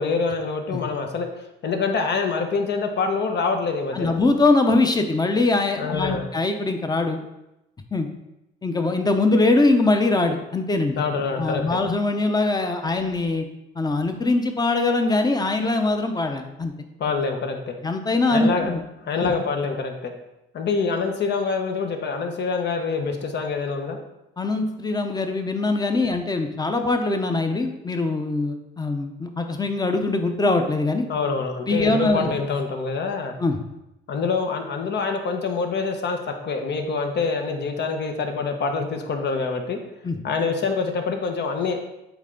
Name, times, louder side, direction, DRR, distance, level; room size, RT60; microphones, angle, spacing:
voice 1, 0.0-4.1 5.7-6.3 11.0-11.8 17.0-17.7 18.3-18.7 19.0-20.1 20.5-24.0 31.1-33.3 34.1-39.8 40.2-41.8, left 4 dB, 60° left, 4 dB, 1.0 m, -25 dB
voice 2, 3.9-7.2 7.9-8.1 8.6-11.0 11.4-13.4 13.8-16.7 17.8-18.8 19.2-19.3 24.4-31.0 31.7-32.3 33.4-33.6 40.0-40.2, left 2 dB, 20° left, 6 dB, 0.8 m, -22 dB
8.1 x 3.3 x 3.9 m, 0.91 s
cardioid pair, 90°, 20 cm